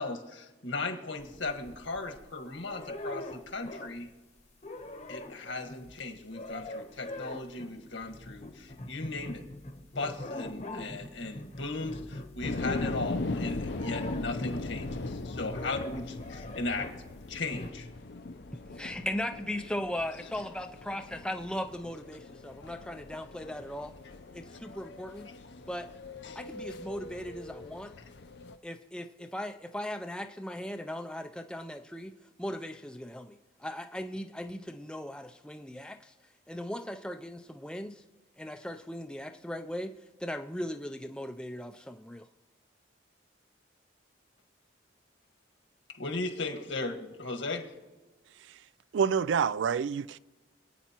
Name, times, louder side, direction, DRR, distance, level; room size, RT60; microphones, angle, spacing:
voice 1, 0.0-4.1 5.1-9.4 10.0-16.9 17.3-17.9 25.4-25.5 26.2-26.4 45.9-47.7, left 3 dB, 80° left, 1.6 m, -37 dB
sound 1, 1.2-2.3 2.6-4.1 4.4-17.1 17.5-17.7, left 1 dB, 35° left, 0.9 m, -42 dB
sound 2, 12.4-28.6, left 2 dB, 60° left, 0.6 m, -40 dB
voice 2, 18.8-23.9 24.3-25.3 25.7-25.9 26.4-27.9 28.6-32.1 32.4-36.1 36.5-38.0 38.4-39.9 40.2-42.2, left 1 dB, 5° left, 0.4 m, -38 dB
voice 3, 48.9-50.2, right 6 dB, 70° right, 0.3 m, -27 dB
26.5 x 9.2 x 3.0 m
head